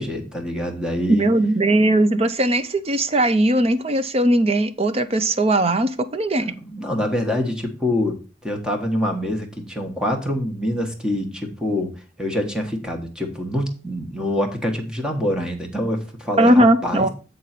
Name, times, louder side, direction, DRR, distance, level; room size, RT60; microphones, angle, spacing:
voice 1, 0.0-1.3 6.4-8.2 8.4-11.9 12.2-17.1, left 1 dB, 5° right, 3 dB, 1.4 m, -25 dB
voice 2, 1.1-6.5 16.4-17.1, right 1 dB, 35° right, 11 dB, 0.7 m, -18 dB
8.5 x 3.9 x 5.8 m, 0.35 s
head